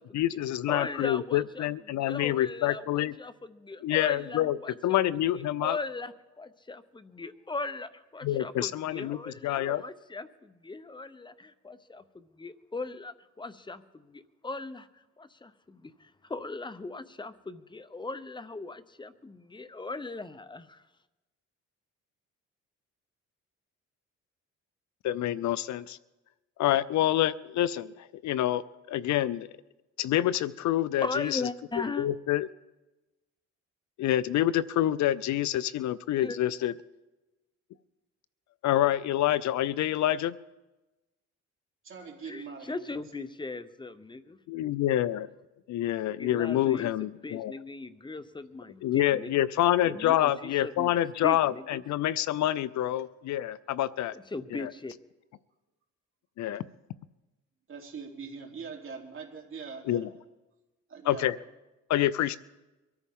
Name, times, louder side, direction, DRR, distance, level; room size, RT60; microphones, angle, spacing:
voice 1, 0.1-3.1 3.8-4.6 4.8-5.8 8.2-9.8 25.0-26.0 26.6-28.6 28.9-29.5 30.0-31.5 32.0-32.5 34.0-36.7 38.6-40.4 44.5-45.3 45.7-47.5 48.8-54.1 54.5-54.7 56.4-56.6 59.9-60.1 61.1-61.4 61.9-62.4, left 13 dB, 70° left, 18 dB, 0.5 m, -27 dB
voice 2, 0.7-1.7 1.9-5.0 5.6-14.9 15.2-20.8 31.0-32.1 36.2-36.4 42.3-44.4 46.2-49.3 49.9-51.8 54.1-54.9, left 3 dB, 15° left, 13 dB, 0.7 m, -38 dB
voice 3, 41.8-43.2 57.7-60.1 60.9-61.3, right 5 dB, 45° right, 0 dB, 3.2 m, -42 dB
23.5 x 13.5 x 3.7 m, 1.1 s
cardioid pair, 90°, 30 cm